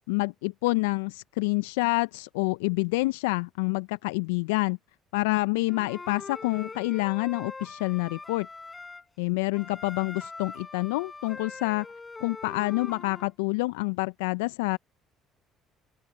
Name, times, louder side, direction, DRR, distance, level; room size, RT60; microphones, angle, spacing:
voice 1, 0.1-4.8 5.1-8.5 9.2-11.9 12.2-14.8, left 24 dB, 75° left, 0.7 m, -27 dB
Wind instrument woodwind instrument, 5.7-9.0 9.5-13.3, left 3 dB, 25° left, 7.3 m, -42 dB
open air
hypercardioid pair, 55°, 0 cm